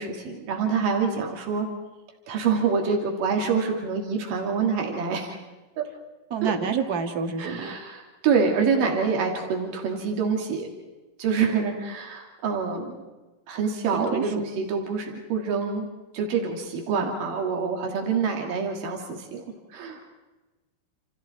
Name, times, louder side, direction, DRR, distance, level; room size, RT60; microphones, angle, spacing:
voice 1, 0.0-1.7 2.3-5.4 5.8-5.9 6.4-6.5 7.4-10.7 11.2-13.0 13.5-15.9 16.1-19.4 19.7-20.0, right 5 dB, 65° right, 1 dB, 4.3 m, -26 dB
voice 2, 6.3-7.7 13.9-14.3 16.9-17.1, right 6 dB, 35° right, 5 dB, 1.6 m, -28 dB
29.0 x 28.0 x 4.5 m, 1.1 s
omnidirectional pair, 4.2 m